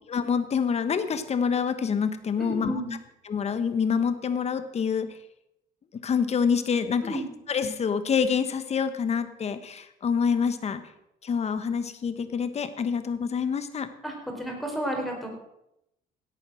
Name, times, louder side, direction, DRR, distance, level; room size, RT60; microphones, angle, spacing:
voice 1, 0.1-2.7 3.3-5.2 6.0-7.2 7.5-10.8 11.2-13.9, left 6 dB, 40° left, 11 dB, 1.4 m, -26 dB
voice 2, 2.4-2.9 7.0-7.3 14.0-15.3, right 1 dB, ahead, 1 dB, 4.6 m, -32 dB
17.0 x 8.6 x 6.3 m, 0.83 s
cardioid pair, 110°, 17 cm